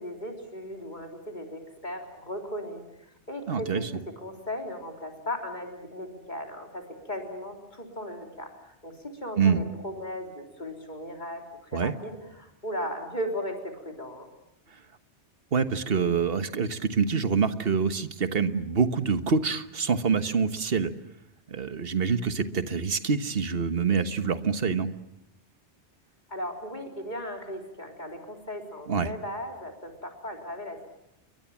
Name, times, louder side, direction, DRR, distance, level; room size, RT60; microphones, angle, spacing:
voice 1, 0.0-2.8 3.3-8.9 9.2-14.3 26.3-30.9, equal, 40° left, 2 dB, 4.0 m, -37 dB
voice 2, 3.5-3.9 9.4-9.6 11.7-11.9 15.5-20.9 21.5-24.9 28.9-29.1, right 5 dB, 55° right, 10 dB, 1.5 m, -26 dB
29.5 x 23.0 x 7.3 m, 0.84 s
omnidirectional pair, 1.2 m